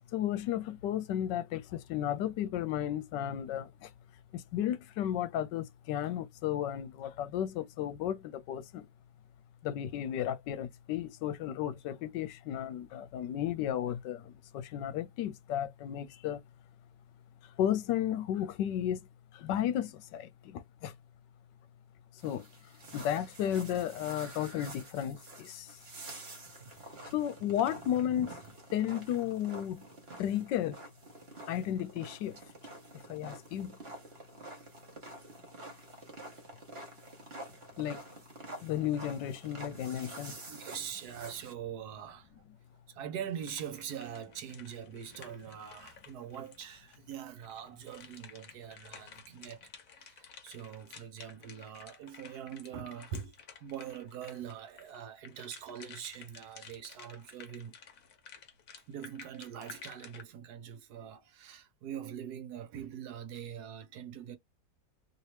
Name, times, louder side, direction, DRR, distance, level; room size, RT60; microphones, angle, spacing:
voice 1, 0.1-3.9 4.3-8.9 9.6-16.4 17.6-19.0 19.3-20.9 22.2-22.5 22.9-25.8 27.1-28.4 28.7-29.8 30.2-30.8 31.5-32.4 33.1-33.8 37.8-38.0 38.6-40.4, left 11 dB, 80° left, 1.2 m, -33 dB
sound 1, 22.2-41.5, right 2 dB, 40° right, 1.3 m, -48 dB
voice 2, 40.5-42.4 42.9-49.7 50.0-53.3 53.6-57.8 58.9-64.4, right 9 dB, 70° right, 1.1 m, -43 dB
sound 2, 43.3-47.1 47.4-60.2, left 7 dB, 55° left, 1.2 m, -53 dB
3.0 x 2.9 x 3.2 m
omnidirectional pair, 1.9 m